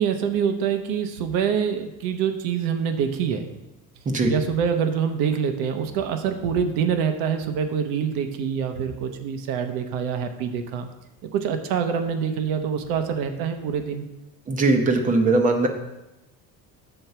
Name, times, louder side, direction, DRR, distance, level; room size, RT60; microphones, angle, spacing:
voice 1, 0.0-3.5 4.3-10.9 11.3-14.1, right 7 dB, 80° right, 7 dB, 1.0 m, -25 dB
voice 2, 14.5-15.7, right 2 dB, 20° right, 5 dB, 0.8 m, -20 dB
7.9 x 4.5 x 6.8 m, 0.99 s
cardioid pair, 180°, 35 cm